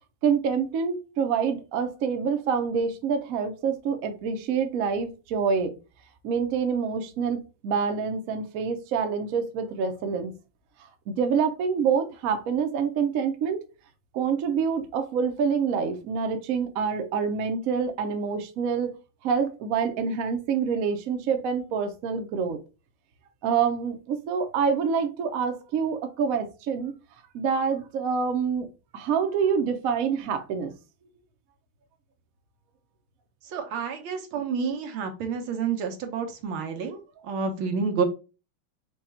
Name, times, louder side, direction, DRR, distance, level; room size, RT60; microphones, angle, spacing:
voice 1, 0.2-5.7 6.2-10.3 11.1-13.6 14.1-18.9 19.2-22.6 23.4-26.9 27.3-28.7 28.9-30.7, right 6 dB, 60° right, 0.9 m, -26 dB
voice 2, 33.5-38.0, right 5 dB, 85° right, 1.7 m, -29 dB
5.0 x 2.3 x 4.3 m
omnidirectional pair, 2.2 m